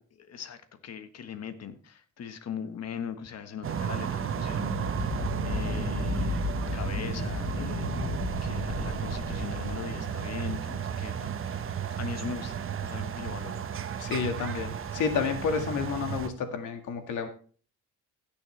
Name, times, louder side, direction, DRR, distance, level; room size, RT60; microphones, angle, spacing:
voice 1, 0.2-5.2 5.4-8.1 8.4-11.6 12.0-13.6, left 7 dB, 55° left, 10 dB, 1.4 m, -40 dB
sound 1, 3.6-16.3, right 8 dB, 45° right, 1.0 m, -33 dB
sound 2, 4.3-10.7, left 5 dB, 40° left, 1.1 m, -35 dB
voice 2, 14.0-17.3, left 6 dB, 80° left, 6 dB, 1.9 m, -30 dB
16.5 x 7.0 x 3.3 m, 0.41 s
cardioid pair, 90°, 30 cm